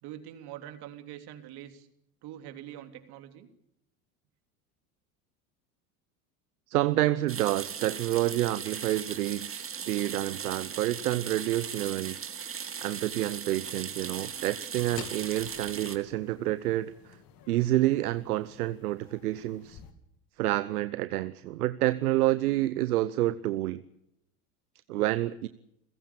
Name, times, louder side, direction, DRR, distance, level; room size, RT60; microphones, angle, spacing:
voice 1, 0.0-1.9 2.2-3.5, right 11 dB, 55° right, 8 dB, 3.3 m, -44 dB
voice 2, 6.7-12.3 12.8-17.2 17.5-19.8 20.4-23.8 24.9-25.5, right 15 dB, 80° right, 14 dB, 0.9 m, -28 dB
sound 1, 7.3-16.0, right 7 dB, 30° right, 2.7 m, -38 dB
sound 2, 14.5-19.9, left 8 dB, 50° left, 3.2 m, -50 dB
29.5 x 16.0 x 6.9 m, 0.78 s
hypercardioid pair, 80°, 45 cm